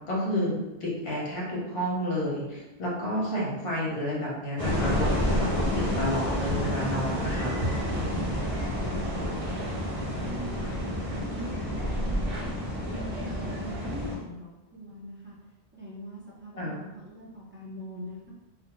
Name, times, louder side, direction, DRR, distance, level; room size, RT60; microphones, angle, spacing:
voice 1, 0.1-7.5 8.0-8.3 16.5-16.8, equal, 75° left, -4 dB, 1.0 m, -30 dB
sound 1, 4.6-14.2, left 1 dB, 35° right, 0.9 m, -30 dB
sound 2, 7.2-14.1, right 2 dB, 70° right, 0.8 m, -38 dB
voice 2, 10.2-12.5 12.9-15.4 15.7-18.3, right 1 dB, 20° right, -7 dB, 0.3 m, -42 dB
2.5 x 2.1 x 3.0 m, 1.0 s
omnidirectional pair, 1.1 m